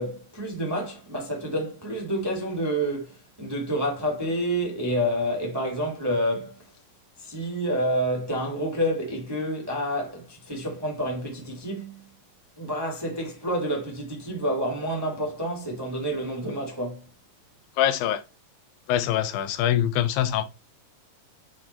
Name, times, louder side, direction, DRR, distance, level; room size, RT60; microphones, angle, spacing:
voice 1, 0.0-6.6 7.2-12.1 12.6-17.1, equal, 10° right, 1.1 m, -28 dB
voice 2, 17.8-18.2 18.9-20.4, left 11 dB, 90° left, 2.6 m, -24 dB
7.6 x 3.8 x 4.3 m
omnidirectional pair, 4.0 m